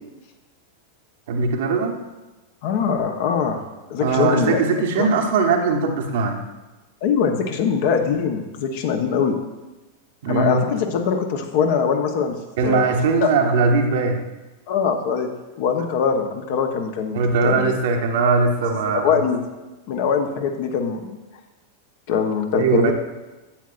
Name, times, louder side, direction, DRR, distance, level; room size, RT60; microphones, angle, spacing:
voice 1, 1.3-2.0 4.0-6.4 10.2-10.6 12.6-14.2 17.1-19.1 22.5-22.9, right 4 dB, 55° right, 4 dB, 1.0 m, -20 dB
voice 2, 2.6-3.6 3.9-4.6 5.0-5.1 7.0-9.4 10.3-12.4 12.6-12.9 13.2-13.3 14.7-15.3 15.6-17.7 18.6-19.4 19.9-21.1 22.1-22.9, left 6 dB, 50° left, 5 dB, 0.9 m, -22 dB
10.0 x 8.3 x 2.5 m, 1.1 s
figure-of-eight pair, 90°, 0 cm